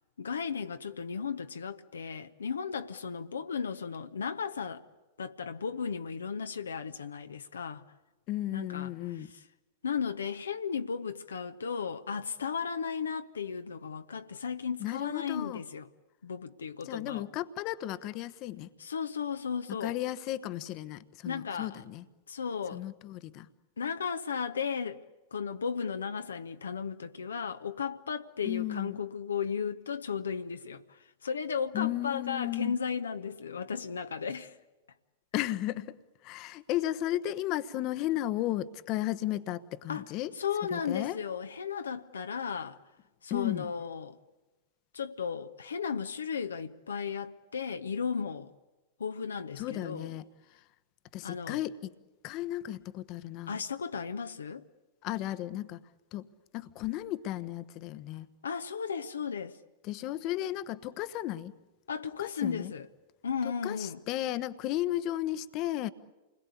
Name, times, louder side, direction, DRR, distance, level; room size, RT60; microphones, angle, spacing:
voice 1, 0.2-4.8 5.2-7.8 8.5-9.4 9.8-15.9 16.2-17.3 18.8-20.0 21.2-21.8 22.3-22.8 23.8-25.0 25.3-34.6 39.9-42.8 43.2-44.2 44.9-48.5 49.0-50.2 51.2-51.6 53.5-54.6 58.4-59.6 61.9-62.9 63.2-64.0, left 6 dB, 75° left, 0.9 m, -35 dB
voice 2, 8.3-9.3 14.8-15.6 16.8-18.7 19.8-22.0 22.7-23.5 28.4-29.0 31.7-32.8 35.3-36.0 36.2-40.3 40.7-41.2 43.3-43.7 49.6-50.2 51.1-51.9 52.2-53.6 55.0-55.8 56.1-56.3 56.5-58.3 59.8-61.5 62.2-62.7 63.6-65.9, left 14 dB, 40° left, 1.0 m, -34 dB
28.5 x 21.5 x 8.5 m
figure-of-eight pair, 95°, 0 cm